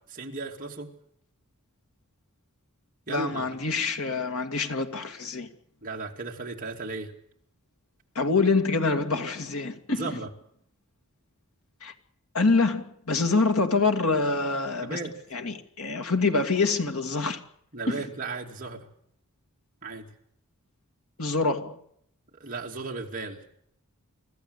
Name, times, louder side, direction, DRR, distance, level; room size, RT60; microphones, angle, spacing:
voice 1, 0.1-0.9 3.1-3.5 5.8-7.1 9.9-10.3 14.8-15.1 17.7-18.9 19.8-20.1 22.4-23.4, right 3 dB, 40° right, 2.7 m, -35 dB
voice 2, 3.1-5.5 8.2-10.1 11.8-11.9 12.3-15.0 15.3-17.4 17.9-18.0 21.2-21.8, left 3 dB, 75° left, 2.3 m, -25 dB
26.0 x 14.5 x 8.2 m
head